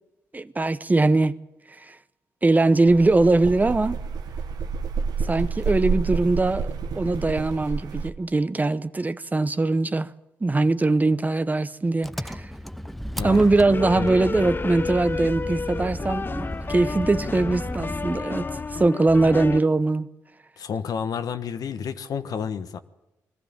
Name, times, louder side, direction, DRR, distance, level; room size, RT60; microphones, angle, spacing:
voice 1, 0.3-1.3 1.9-2.0 2.4-4.0 5.3-10.1 10.4-12.5 13.2-18.5 18.7-20.1, right 2 dB, 25° right, 0.9 m, -21 dB
sound 1, 2.9-8.1, right 5 dB, 70° right, 1.2 m, -29 dB
Engine, 12.0-18.3, equal, ahead, 0.9 m, -34 dB
sound 2, 13.3-19.6, left 4 dB, 30° left, 0.6 m, -31 dB
voice 2, 20.6-22.8, left 7 dB, 65° left, 1.2 m, -30 dB
21.5 x 14.0 x 8.8 m
supercardioid pair, 55°, 7 cm